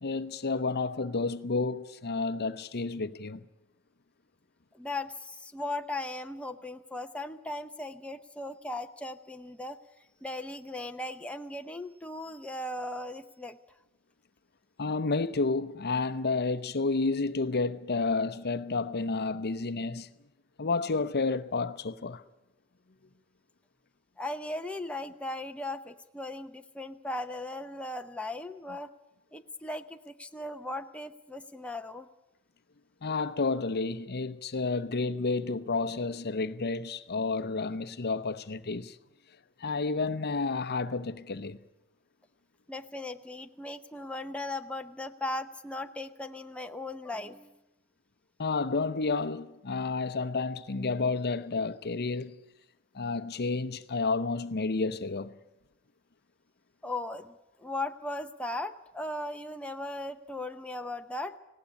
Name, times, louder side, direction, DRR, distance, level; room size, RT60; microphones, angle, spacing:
voice 1, 0.0-3.4 14.8-20.1 20.6-22.2 33.0-39.0 39.6-41.6 48.4-52.4 52.9-55.3, left 3 dB, 45° left, 0.8 m, -30 dB
voice 2, 4.7-9.8 10.2-13.6 24.2-28.9 29.3-32.1 42.7-47.5 56.8-61.4, left 2 dB, 5° left, 0.7 m, -37 dB
19.0 x 17.5 x 9.8 m
head